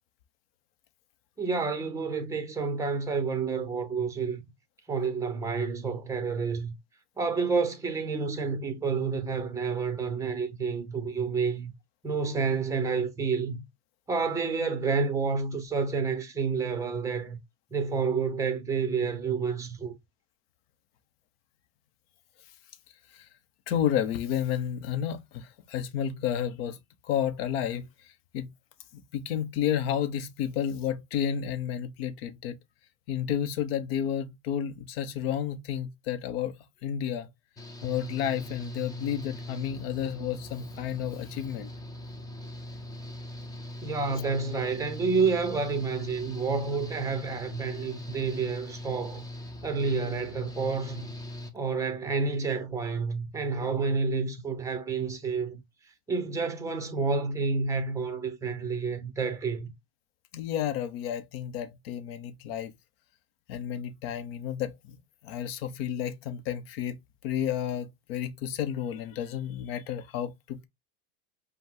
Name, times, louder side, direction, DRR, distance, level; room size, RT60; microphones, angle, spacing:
voice 1, 1.4-4.4 4.9-6.7 7.2-11.7 12.0-13.6 14.1-17.4 17.7-19.9 43.8-49.2 49.6-51.1 51.5-55.6 56.1-59.7, right 5 dB, 10° right, 1.0 m, -29 dB
voice 2, 23.7-26.8 27.0-27.9 28.3-28.5 28.9-32.6 33.1-36.5 36.8-37.3 37.8-41.7 44.2-44.3 60.3-62.7 63.5-65.0 65.2-67.0 67.2-70.7, left 9 dB, 70° left, 0.9 m, -31 dB
Engine / Mechanical fan, 37.6-51.5, left 1 dB, 10° left, 0.8 m, -41 dB
5.4 x 2.3 x 3.7 m
supercardioid pair, 130°, 31 cm